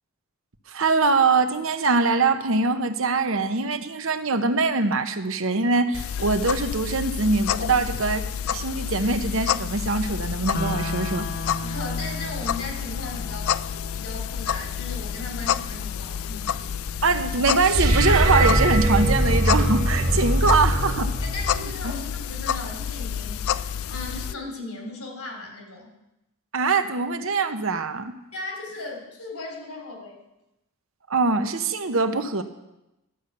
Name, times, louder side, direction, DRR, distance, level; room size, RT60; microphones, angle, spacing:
voice 1, 0.7-8.2 8.5-11.3 17.0-21.1 26.5-28.1 31.1-32.4, right 3 dB, 65° right, 9 dB, 0.9 m, -23 dB
sound 1, 5.9-24.3, left 8 dB, 70° left, 0.4 m, -29 dB
sound 2, 10.5-20.5, left 1 dB, 45° left, 0.9 m, -38 dB
voice 2, 11.6-13.6 13.9-16.6 21.2-26.0 28.3-30.2, left 2 dB, 90° left, 2 dB, 3.1 m, -37 dB
sound 3, 17.6-22.0, right 1 dB, 45° right, 1.9 m, -22 dB
12.0 x 8.4 x 6.6 m, 0.93 s
head